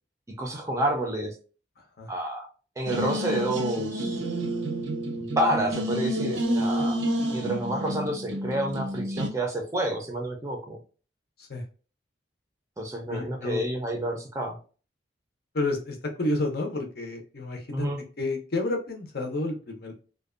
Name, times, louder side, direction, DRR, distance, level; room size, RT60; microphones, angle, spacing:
voice 1, 0.4-1.3 2.1-2.5 2.8-4.2 5.1-7.0 7.3-10.8 12.8-14.6 17.7-18.0, right 1 dB, 15° right, 2 dB, 0.5 m, -29 dB
voice 2, 1.8-2.1 11.4-11.6 13.1-13.7 15.5-17.9 18.2-20.0, left 2 dB, 55° left, 3 dB, 0.6 m, -30 dB
sound 1, 2.9-9.3, right 1 dB, 90° right, 0.6 m, -29 dB
2.5 x 2.2 x 2.4 m, 0.37 s
head